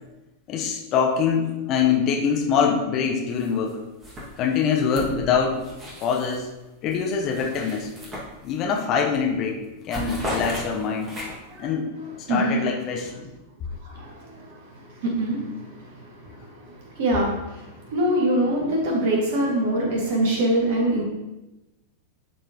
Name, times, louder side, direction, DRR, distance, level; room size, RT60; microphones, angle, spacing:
voice 1, 0.5-3.8 4.4-5.7 6.0-6.5 6.8-7.9 8.4-11.1 11.6-11.9 12.3-13.1, left 6 dB, 35° left, 1 dB, 1.0 m, -24 dB
sound 1, 3.4-3.7 4.0-6.5 6.9-8.8 9.1-9.4 9.6-11.6, equal, 20° right, 2.2 m, -36 dB
voice 2, 12.3-12.6 13.8-21.0, right 1 dB, 50° right, -2 dB, 2.2 m, -25 dB
11.5 x 4.4 x 3.1 m, 1.0 s
figure-of-eight pair, 90°, 0 cm